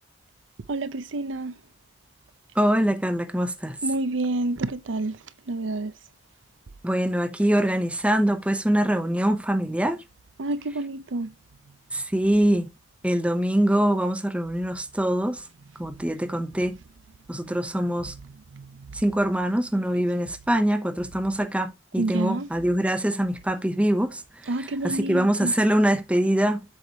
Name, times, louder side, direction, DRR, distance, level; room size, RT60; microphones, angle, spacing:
voice 1, 0.7-1.5 3.8-5.2 5.5-5.9 10.4-11.3 15.9-16.4 17.4-17.7 18.1-19.0 22.0-22.5 24.5-25.5, right 2 dB, 90° right, 0.6 m, -29 dB
voice 2, 2.6-3.8 6.8-10.0 11.9-12.7 13.0-15.4 15.8-16.8 17.3-18.1 18.9-24.2 24.8-26.6, right 1 dB, 5° right, 0.7 m, -23 dB
7.9 x 5.8 x 2.8 m
head